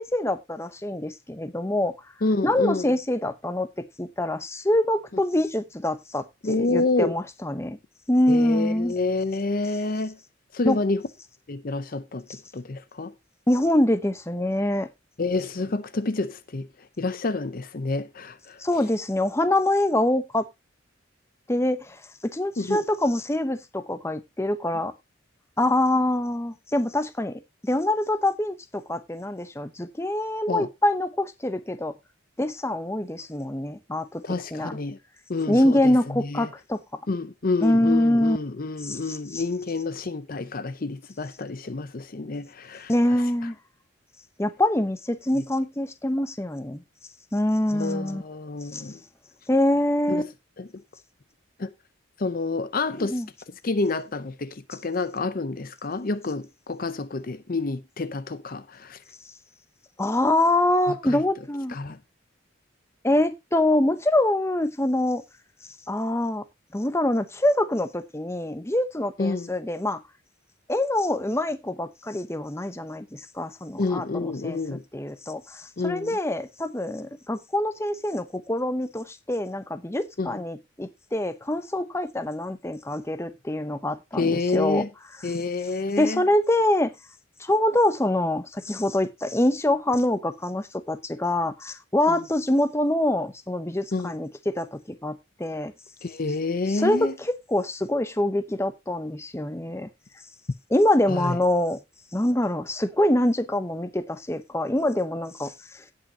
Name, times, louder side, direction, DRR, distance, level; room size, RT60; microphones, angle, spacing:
voice 1, 0.0-1.9 2.4-3.7 4.0-7.8 8.1-8.9 10.7-10.8 13.5-14.9 18.6-20.5 21.5-22.0 22.3-24.9 25.6-27.3 27.6-31.9 32.4-34.2 34.5-34.8 35.5-36.8 37.6-38.4 38.8-39.4 42.9-43.6 44.4-46.8 47.3-48.2 48.7-48.8 49.5-50.3 53.0-53.3 60.0-61.8 63.0-65.2 65.9-66.4 66.7-70.0 70.7-74.6 74.9-84.8 86.0-86.9 87.4-95.7 96.7-99.9 100.7-101.8 102.1-105.8, left 1 dB, 15° left, 0.8 m, -25 dB
voice 2, 2.2-2.9 6.4-7.2 8.3-10.2 10.5-11.0 11.5-13.1 15.2-16.7 17.0-18.6 22.6-22.8 30.5-30.7 34.2-35.0 35.3-36.5 37.1-43.2 45.4-45.5 47.7-49.0 50.1-50.3 50.6-50.7 51.6-51.7 52.2-53.2 53.6-59.0 60.9-61.2 61.7-62.0 69.2-69.5 73.8-74.8 75.8-76.2 80.2-80.4 84.1-84.9 85.2-86.2 92.1-92.2 93.9-94.1 96.0-97.1 101.1-101.4, left 3 dB, 45° left, 0.7 m, -28 dB
17.0 x 5.8 x 2.8 m
head